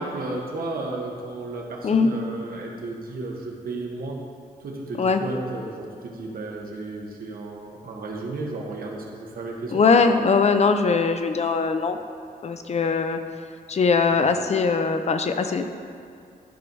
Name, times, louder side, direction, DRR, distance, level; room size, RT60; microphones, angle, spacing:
voice 1, 0.0-4.2 4.6-9.8, right 2 dB, 70° right, -1 dB, 1.3 m, -33 dB
voice 2, 9.7-12.0 12.4-13.2 13.7-15.7, left 4 dB, 45° left, 7 dB, 0.6 m, -21 dB
11.5 x 4.5 x 5.5 m, 2.4 s
wide cardioid pair, 135°, 16 cm